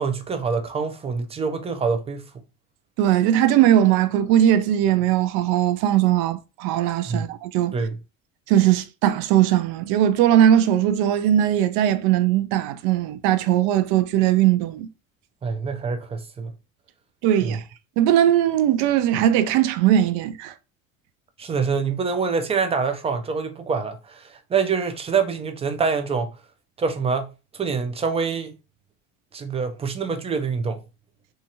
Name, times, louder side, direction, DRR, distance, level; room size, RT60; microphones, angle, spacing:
voice 1, 0.0-2.2 7.1-7.3 7.7-8.0 15.4-16.5 17.4-17.6 21.4-26.3 26.8-27.3 27.5-28.6 29.3-30.8, right 5 dB, 15° right, 0.4 m, -25 dB
voice 2, 3.0-7.7 8.5-14.9 17.2-17.6 18.0-20.5, right 11 dB, 70° right, 0.5 m, -19 dB
2.7 x 2.5 x 2.7 m
supercardioid pair, 105°, 39 cm